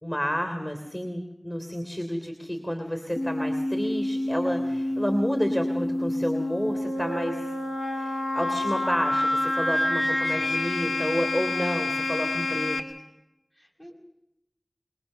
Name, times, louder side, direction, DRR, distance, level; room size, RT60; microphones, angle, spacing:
voice 1, 0.0-7.5 7.9-12.8, equal, 30° left, 5 dB, 3.2 m, -30 dB
sound 1, 3.2-12.8, left 1 dB, 85° left, 2.2 m, -28 dB
voice 2, 4.5-5.0 10.3-10.6 13.6-14.0, equal, 45° left, 0 dB, 6.1 m, -49 dB
23.0 x 22.0 x 6.8 m, 0.88 s
wide cardioid pair, 40°, 0 cm